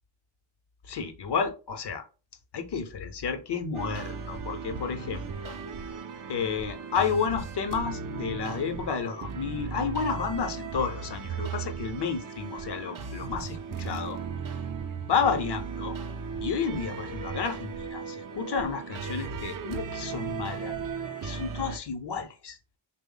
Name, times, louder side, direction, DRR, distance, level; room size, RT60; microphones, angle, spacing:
voice 1, 0.9-2.0 2.5-5.5 6.3-14.2 14.9-15.9 16.4-20.8 21.2-22.6, left 6 dB, 55° left, 7 dB, 0.7 m, -31 dB
sound 1, 3.7-21.8, right 5 dB, 45° right, 0.5 m, -36 dB
3.2 x 2.1 x 3.8 m, 0.33 s
cardioid pair, 55°, 48 cm